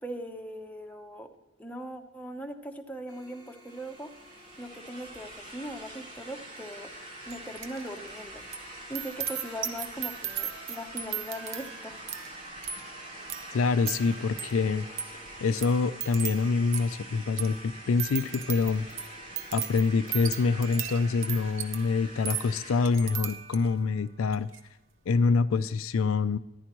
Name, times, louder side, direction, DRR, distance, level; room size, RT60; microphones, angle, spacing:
voice 1, 0.0-1.3 1.6-4.1 4.6-6.9 7.2-8.4 8.9-12.0, equal, 5° left, 3 dB, 0.8 m, -40 dB
sound 1, 3.1-9.8, right 1 dB, 20° right, 1.9 m, -56 dB
sound 2, 3.7-23.0, right 1 dB, 40° right, 1.8 m, -45 dB
sound 3, 7.3-23.8 24.3-24.6, right 9 dB, 65° right, 0.9 m, -38 dB
voice 2, 13.5-14.9 15.4-18.9 19.5-24.5 25.1-26.4, left 4 dB, 75° left, 12 dB, 0.4 m, -26 dB
14.0 x 10.5 x 3.0 m, 0.99 s
head